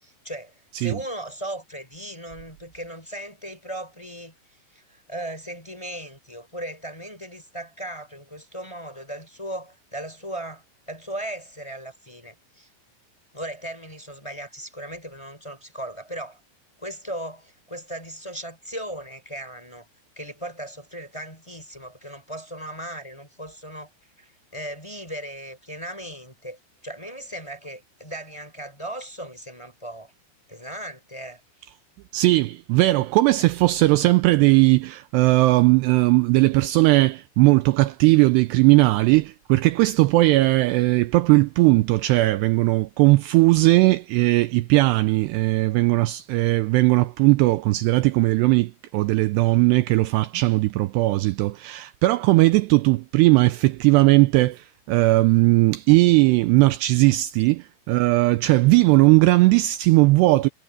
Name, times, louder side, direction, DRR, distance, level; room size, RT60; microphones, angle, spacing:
voice 1, 0.0-4.3 4.7-12.7 13.3-16.4 16.8-19.9 20.2-23.9 24.2-30.1 30.5-31.7, right 1 dB, 5° left, 3.8 m, -37 dB
voice 2, 32.1-60.5, right 20 dB, 90° right, 2.4 m, -18 dB
omnidirectional pair, 5.6 m